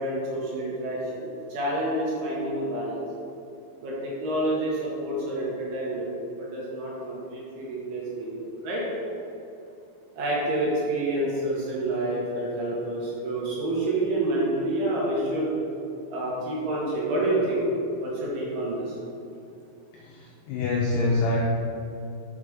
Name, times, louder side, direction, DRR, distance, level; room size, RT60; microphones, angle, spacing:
voice 1, 0.0-3.0 3.8-8.8 10.1-15.5 16.1-17.7 18.0-19.0, right 1 dB, 65° right, -5 dB, 3.0 m, -28 dB
voice 2, 19.9-21.4, left 3 dB, 90° left, -3 dB, 2.3 m, -26 dB
6.6 x 5.4 x 4.9 m, 2.7 s
omnidirectional pair, 5.4 m